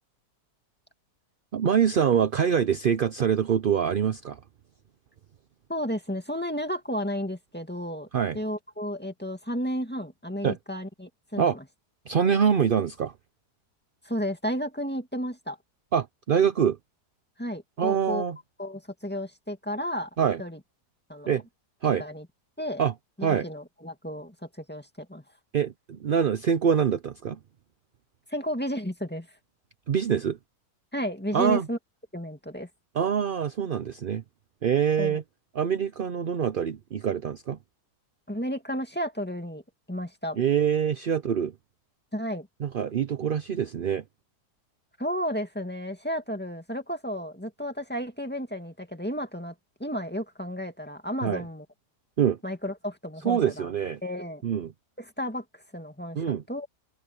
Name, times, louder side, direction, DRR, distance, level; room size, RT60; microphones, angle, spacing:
voice 1, 1.5-4.4 8.1-8.4 10.4-10.6 11.4-11.6 12.1-13.1 15.9-16.8 17.8-18.4 20.2-20.4 21.3-21.4 21.8-22.0 22.8-22.9 23.2-23.5 25.5-27.4 29.9-30.4 31.3-31.7 32.9-34.2 34.6-35.2 35.5-37.6 40.4-41.5 42.6-44.0 51.2-51.4 52.2-52.4 53.2-54.0 54.4-54.7 56.1-56.4, right 8 dB, 55° right, 0.6 m, -25 dB
voice 2, 5.7-8.1 8.3-11.6 14.1-15.6 17.4-18.2 18.6-20.1 20.4-20.6 21.1-21.3 22.0-22.3 22.6-22.8 23.2-25.2 28.3-29.3 30.9-31.8 32.1-32.7 35.0-35.2 38.3-39.6 39.9-40.4 42.1-42.5 45.0-49.5 49.8-51.6 52.4-53.7 54.0-54.4 55.0-56.7, equal, 5° left, 2.1 m, -32 dB
omnidirectional pair, 1.7 m